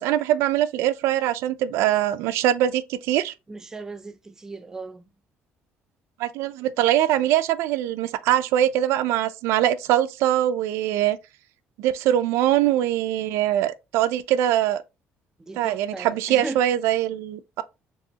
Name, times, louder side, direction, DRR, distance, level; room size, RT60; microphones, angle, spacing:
voice 1, 0.0-3.3 6.2-11.2 11.8-14.8 15.5-17.6, right 12 dB, 90° right, 0.4 m, -22 dB
voice 2, 3.5-5.1 15.5-16.6, right 3 dB, 10° right, 0.4 m, -37 dB
4.6 x 3.4 x 2.8 m
cardioid pair, 180°, 4 cm